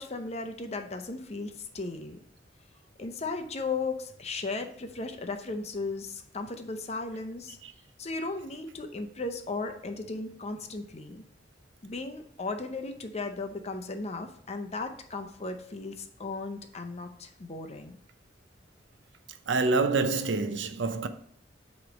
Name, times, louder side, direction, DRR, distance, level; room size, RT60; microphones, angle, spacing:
voice 1, 0.0-2.2 3.0-7.6 8.0-11.2 11.8-18.0, left 3 dB, 35° left, 0.7 m, -36 dB
voice 2, 19.5-21.1, right 3 dB, 75° right, 0.6 m, -26 dB
7.7 x 3.1 x 5.1 m
head